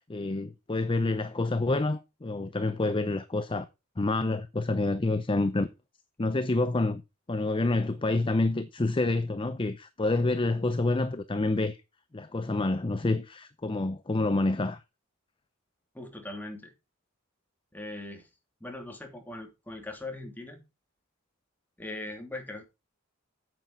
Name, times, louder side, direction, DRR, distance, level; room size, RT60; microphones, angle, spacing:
voice 1, 0.1-3.6 4.0-5.7 6.2-7.0 7.3-11.8 12.1-14.8, left 2 dB, 25° left, 0.6 m, -28 dB
voice 2, 15.9-16.7 17.7-18.3 18.6-20.6 21.8-22.6, left 2 dB, 10° left, 2.8 m, -40 dB
9.2 x 8.1 x 4.5 m
head